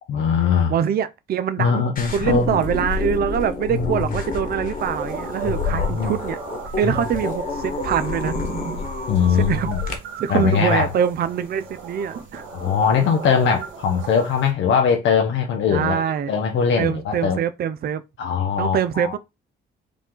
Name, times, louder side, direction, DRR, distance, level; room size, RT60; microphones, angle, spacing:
voice 1, 0.1-0.7 1.6-2.5 3.7-3.8 5.4-6.1 6.8-6.9 9.1-9.8 10.3-10.9 12.5-17.4 18.2-19.1, left 6 dB, 75° left, 0.8 m, -21 dB
voice 2, 0.7-6.4 6.8-8.4 9.3-9.7 10.2-12.4 15.7-16.3 16.8-18.0 18.6-19.2, right 8 dB, 50° right, 0.5 m, -24 dB
sound 1, 2.0-10.0, left 4 dB, 45° left, 1.4 m, -29 dB
sound 2, 4.8-14.5, right 5 dB, 80° right, 2.0 m, -35 dB
4.9 x 2.4 x 3.8 m
cardioid pair, 90°, 20 cm